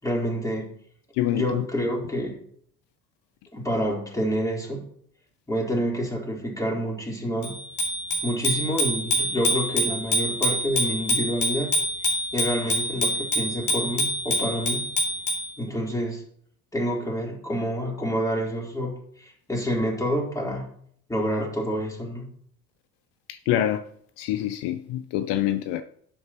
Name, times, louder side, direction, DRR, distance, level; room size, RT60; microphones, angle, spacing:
voice 1, 0.0-0.8 1.3-2.4 3.5-4.9 5.5-7.6 8.2-11.7 12.3-14.9 15.6-16.2 16.7-20.7 21.1-22.3, equal, 5° left, 4.1 m, -28 dB
voice 2, 1.2-1.7 23.3-23.8 24.2-25.8, left 12 dB, 65° left, 0.8 m, -26 dB
Bicycle bell, 7.4-15.5, left 1 dB, 40° left, 4.0 m, -26 dB
11.0 x 8.2 x 3.1 m
hypercardioid pair, 65°, 45 cm